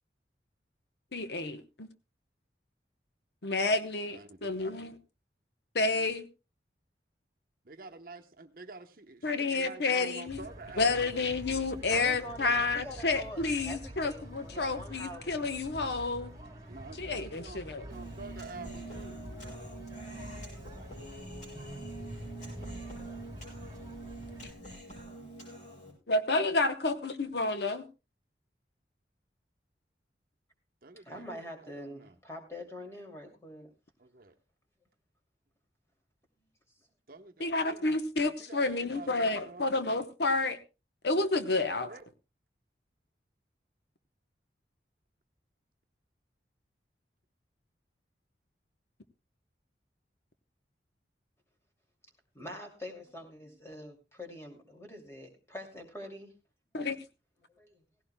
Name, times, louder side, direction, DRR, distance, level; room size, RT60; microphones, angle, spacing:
voice 1, 1.1-1.9 3.4-5.0 5.7-6.3 9.2-10.5 10.8-16.3 16.9-17.9 26.1-27.9 37.4-40.6 41.0-41.9 56.7-57.0, left 3 dB, 70° left, 0.9 m, -30 dB
voice 2, 4.2-4.5 7.7-11.3 16.7-19.2 30.8-31.0 31.8-32.1 34.1-34.3 37.1-37.8 38.4-39.6 41.9-42.0, right 3 dB, 50° right, 1.0 m, -47 dB
sound 1, 10.3-24.5, right 1 dB, 20° right, 3.2 m, -46 dB
voice 3, 11.9-15.5 16.3-17.1 31.0-33.7 36.8-36.9 52.3-56.3 57.5-57.8, equal, 15° left, 2.5 m, -45 dB
Human voice, 17.9-25.9, right 2 dB, 40° left, 6.4 m, -45 dB
17.0 x 16.0 x 2.2 m
head